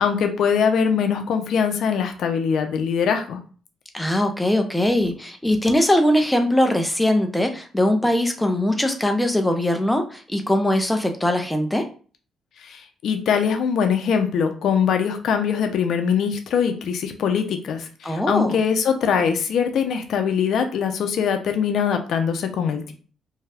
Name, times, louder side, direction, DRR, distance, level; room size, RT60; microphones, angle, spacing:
voice 1, 0.0-3.4 12.6-22.9, left 7 dB, 70° left, 5 dB, 0.5 m, -22 dB
voice 2, 3.9-11.9 18.0-18.5, left 1 dB, 10° left, 5 dB, 0.6 m, -21 dB
2.7 x 2.3 x 3.3 m, 0.39 s
cardioid pair, 90°, 0 cm